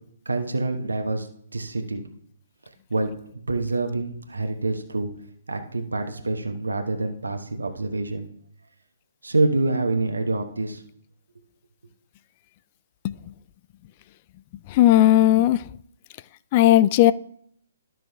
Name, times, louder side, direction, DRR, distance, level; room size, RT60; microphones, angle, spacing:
voice 1, 0.2-1.3 1.5-2.0 2.9-3.1 3.5-5.1 5.5-8.3 9.2-10.8, right 2 dB, 80° right, 1.1 m, -26 dB
voice 2, 14.7-15.6 16.5-17.1, left 13 dB, 35° left, 0.3 m, -16 dB
12.0 x 6.1 x 3.4 m
figure-of-eight pair, 130°, 0 cm